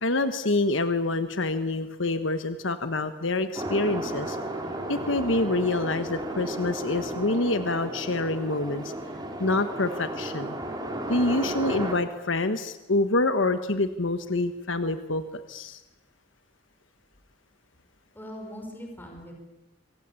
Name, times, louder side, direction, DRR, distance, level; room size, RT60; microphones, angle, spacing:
voice 1, 0.0-4.4 4.9-8.9 9.4-10.5 11.1-15.8, left 2 dB, 70° left, 9 dB, 1.4 m, -26 dB
sound 1, 3.5-11.9, right 1 dB, 20° right, 4.1 m, -34 dB
voice 2, 18.1-19.3, equal, 10° left, 2 dB, 5.3 m, -40 dB
27.0 x 25.0 x 8.5 m, 0.98 s
head